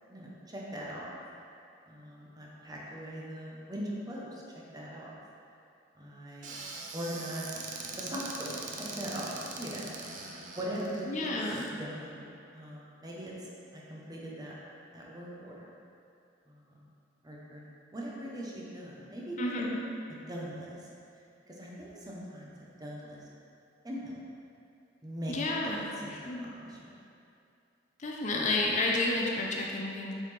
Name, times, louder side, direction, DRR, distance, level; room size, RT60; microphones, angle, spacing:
voice 1, 0.1-1.1 1.9-4.4 4.7-5.2 6.0-6.5 6.9-7.6 8.0-9.9 10.6-12.2 12.5-14.6 14.9-15.7 16.5-16.9 17.2-17.6 17.9-19.6 20.3-20.8 21.5-22.5 22.8-23.2 23.8-24.2 25.0-25.3 25.6-26.1 26.4-26.9, equal, 20° right, -4 dB, 0.9 m, -40 dB
Squeak / Cupboard open or close, 6.4-11.7, right 3 dB, 45° right, 0.6 m, -42 dB
voice 2, 11.1-11.7 19.4-19.8 25.3-25.8 26.1-26.5 28.0-30.1, left 2 dB, 40° left, -1 dB, 0.6 m, -31 dB
7.0 x 4.1 x 3.3 m, 2.6 s
head